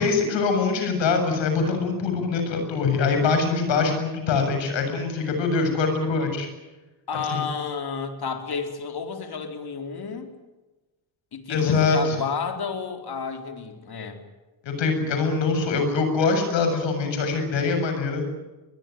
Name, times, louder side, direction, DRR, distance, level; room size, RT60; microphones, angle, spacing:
voice 1, 0.0-6.5 7.3-7.4 11.5-12.3 14.6-18.3, left 4 dB, 75° left, 5 dB, 7.5 m, -23 dB
voice 2, 7.1-10.3 11.3-14.2, left 5 dB, 55° left, 5 dB, 4.2 m, -31 dB
23.0 x 21.5 x 9.4 m, 1.2 s
supercardioid pair, 65°, 46 cm